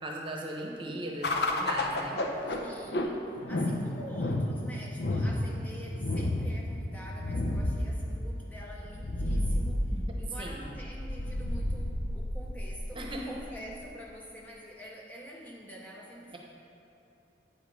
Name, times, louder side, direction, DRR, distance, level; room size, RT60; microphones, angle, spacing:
voice 1, 0.0-2.2 9.9-10.0 10.4-10.7 12.9-13.2, right 1 dB, 30° right, 0 dB, 0.9 m, -38 dB
sound 1, 1.2-13.8, left 1 dB, 65° left, 0.7 m, -32 dB
voice 2, 2.5-16.4, equal, 10° left, -3 dB, 0.6 m, -46 dB
8.8 x 5.1 x 5.3 m, 2.9 s
head